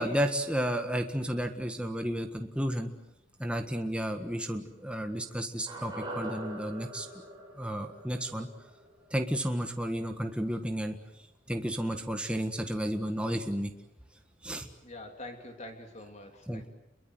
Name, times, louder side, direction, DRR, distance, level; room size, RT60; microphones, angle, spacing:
voice 1, 0.0-2.9 3.4-7.1 7.6-8.5 9.1-11.0 11.5-13.7 14.4-14.7 16.5-16.7, equal, 5° right, 4 dB, 1.6 m, -32 dB
sound 1, 5.7-10.0 10.2-10.3, right 1 dB, 20° right, 6.6 m, -43 dB
voice 2, 14.8-16.7, left 1 dB, 35° left, 4 dB, 3.1 m, -45 dB
29.5 x 23.0 x 7.9 m, 0.84 s
head